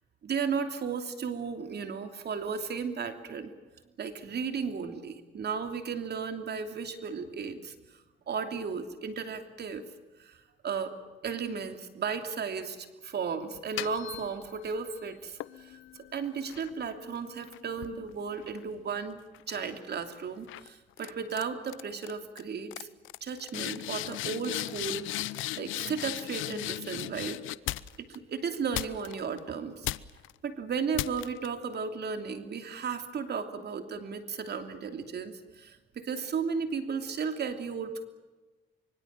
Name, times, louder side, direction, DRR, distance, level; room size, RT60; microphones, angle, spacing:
voice 1, 0.2-3.5 4.0-7.7 8.3-9.8 10.2-10.4 10.6-10.9 11.2-15.8 16.1-19.2 19.5-22.9 23.2-25.1 25.6-27.4 28.1-29.9 30.4-38.1, right 6 dB, 55° right, 7 dB, 3.0 m, -34 dB
sound 1, 13.5-14.8 15.4-19.0 19.3-19.7 20.5-20.7 21.0-21.4 21.7-22.1 22.4-22.5 22.7-28.2 28.7-29.4 29.8-30.3 30.9-31.5, left 15 dB, 90° left, 0.8 m, -37 dB
25.0 x 24.5 x 7.6 m, 1.2 s
cardioid pair, 90°, 20 cm